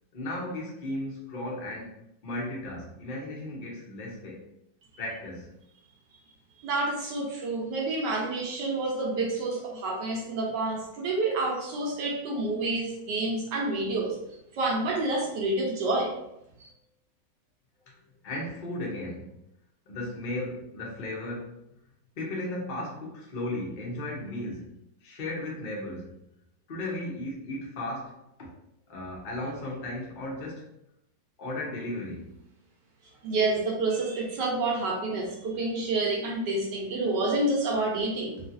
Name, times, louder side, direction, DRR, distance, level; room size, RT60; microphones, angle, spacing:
voice 1, 0.1-4.4 5.0-5.5 18.2-19.3 19.9-21.5 22.2-24.7 25.0-26.1 26.7-28.5 28.9-30.7 31.4-32.3, left 1 dB, 55° left, -3 dB, 0.5 m, -35 dB
voice 2, 6.6-14.2 14.5-16.2 16.6-16.7 33.2-38.4, right 2 dB, 70° right, -1 dB, 1.3 m, -28 dB
3.1 x 2.7 x 2.5 m, 0.80 s
omnidirectional pair, 2.0 m